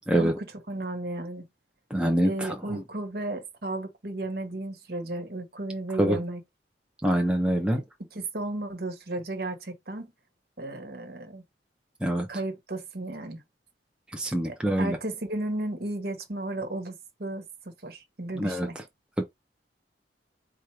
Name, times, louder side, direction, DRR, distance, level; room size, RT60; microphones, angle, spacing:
voice 1, 0.7-1.5 2.2-6.4 7.7-7.8 8.1-10.1 10.6-11.4 12.3-13.4 14.4-18.7, right 2 dB, 55° right, 1.3 m, -34 dB
voice 2, 1.9-2.8 6.0-6.2 7.0-7.8 12.0-12.3 14.1-15.0 18.4-18.7 19.2-19.3, right 1 dB, 5° right, 0.6 m, -25 dB
4.5 x 2.4 x 4.6 m
head